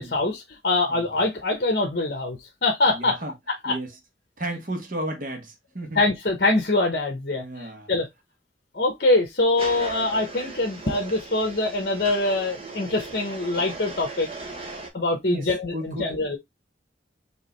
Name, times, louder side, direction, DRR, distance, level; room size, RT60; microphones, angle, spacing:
voice 1, 0.0-3.1 3.6-3.7 6.0-8.1 8.7-14.3 14.9-16.4, left 2 dB, 55° left, 1.0 m, -24 dB
voice 2, 2.9-3.3 3.6-4.0 4.4-6.0 7.3-7.9 15.3-16.1, right 1 dB, 50° right, 1.4 m, -33 dB
sound 1, 9.6-14.9, right 3 dB, 30° right, 1.1 m, -38 dB
4.8 x 3.0 x 3.2 m
head